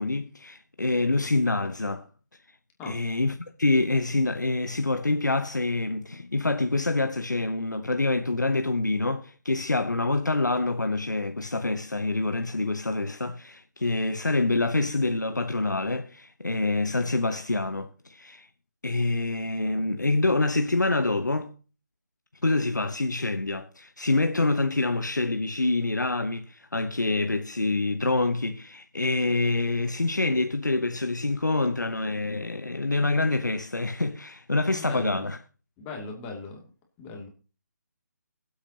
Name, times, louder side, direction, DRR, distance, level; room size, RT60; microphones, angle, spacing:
voice 1, 0.0-2.1 2.9-18.5 18.8-21.5 22.4-35.4, left 2 dB, 85° left, 0.8 m, -26 dB
voice 2, 34.8-35.2 35.8-36.6 37.0-37.3, left 3 dB, 15° left, 2.5 m, -38 dB
22.5 x 8.0 x 2.9 m
figure-of-eight pair, 150°, 10 cm